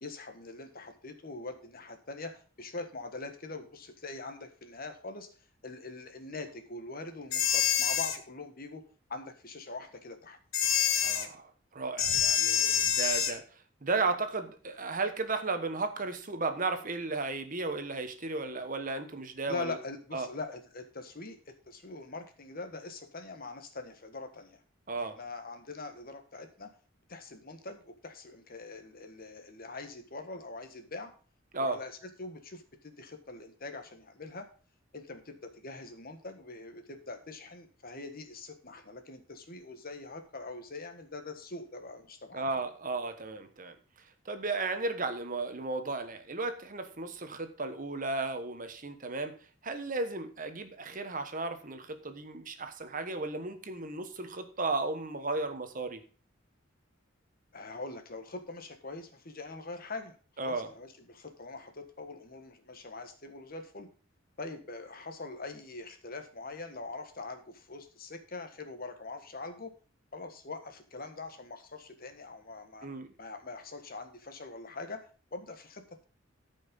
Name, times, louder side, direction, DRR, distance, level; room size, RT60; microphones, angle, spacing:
voice 1, 0.0-5.3 5.6-8.8 9.1-10.4 19.5-21.4 21.7-24.6 25.0-26.7 27.1-31.1 31.6-31.9 32.2-34.5 34.9-42.4 57.5-60.2 60.4-63.9 64.4-69.7 70.1-72.9 73.2-76.1, left 3 dB, 45° left, 7 dB, 1.5 m, -43 dB
sound 1, 7.3-8.2 10.5-11.3 12.0-13.4, left 9 dB, 80° left, 1.3 m, -27 dB
voice 2, 11.0-19.8 20.1-20.3 24.9-25.2 31.5-31.8 42.3-43.7 44.2-49.3 49.6-56.0 60.4-60.7 72.8-73.1, right 3 dB, 40° right, 8 dB, 1.2 m, -34 dB
13.5 x 5.6 x 5.3 m, 0.39 s
head